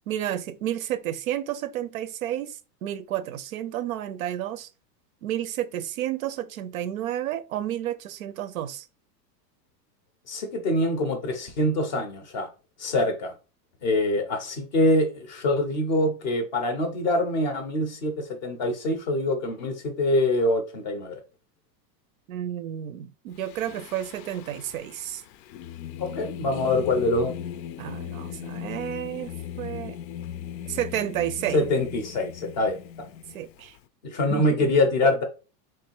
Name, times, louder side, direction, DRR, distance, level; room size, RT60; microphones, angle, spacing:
voice 1, 0.1-4.7 5.2-8.9 22.3-25.2 27.8-30.0 30.7-31.7 33.3-33.8 34.3-34.7, right 11 dB, 60° right, 0.5 m, -31 dB
voice 2, 10.3-12.5 12.8-13.3 13.8-21.2 26.0-27.3 31.5-33.1 34.0-35.2, left 1 dB, 30° left, 0.5 m, -24 dB
Singing, 23.4-33.8, left 10 dB, 90° left, 0.7 m, -39 dB
3.8 x 3.2 x 4.4 m
supercardioid pair, 180°, 50 cm